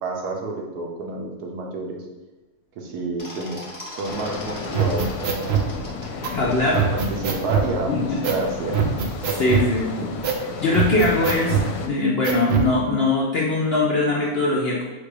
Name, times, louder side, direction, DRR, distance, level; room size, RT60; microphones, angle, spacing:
voice 1, 0.0-2.0 2.8-3.6 3.9-5.7 6.7-8.9, right 2 dB, 80° right, 0 dB, 1.3 m, -29 dB
sound 1, 3.2-6.6, left 1 dB, 20° left, 0.6 m, -39 dB
sound 2, 4.1-11.9, left 5 dB, 80° left, 1.1 m, -33 dB
sound 3, 4.7-5.7 6.2-6.3 6.7-7.7 8.2-8.4 8.7-9.7 10.2-10.4 10.7-11.7 12.2-12.7, right 7 dB, 65° right, 0.6 m, -22 dB
voice 2, 6.3-6.8 7.9-8.2 9.3-10.1 10.6-14.8, left 2 dB, 60° left, -4 dB, 0.6 m, -21 dB
4.3 x 2.4 x 4.8 m, 1.2 s
omnidirectional pair, 1.6 m